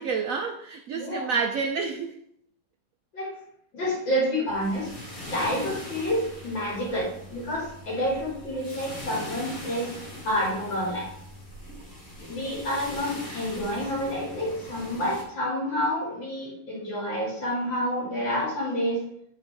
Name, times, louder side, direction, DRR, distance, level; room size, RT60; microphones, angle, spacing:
voice 1, 0.0-2.2 13.3-13.4, right 5 dB, 75° right, 5 dB, 0.7 m, -29 dB
voice 2, 0.9-1.3 3.1-3.3 3.7-4.9 5.3-9.9 10.2-11.1 12.3-19.0, equal, 80° left, -5 dB, 3.0 m, -28 dB
sound 1, 4.5-15.2, left 1 dB, 50° left, 3.0 m, -41 dB
11.5 x 3.9 x 3.4 m, 0.70 s
omnidirectional pair, 2.0 m